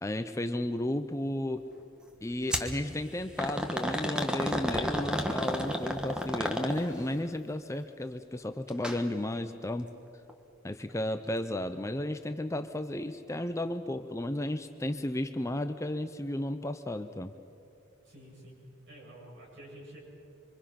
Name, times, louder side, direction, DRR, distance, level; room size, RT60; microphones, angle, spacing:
voice 1, 0.0-1.7 2.2-9.9 10.6-17.3, left 1 dB, 15° left, 8 dB, 0.5 m, -33 dB
sound 1, 2.5-2.7 3.4-7.1 8.7-9.0 9.3-9.4 10.3-10.4, equal, 5° right, 1.3 m, -31 dB
voice 2, 18.0-18.6 18.9-20.0, right 1 dB, 55° right, -3 dB, 7.7 m, -49 dB
26.0 x 25.0 x 5.9 m, 2.7 s
head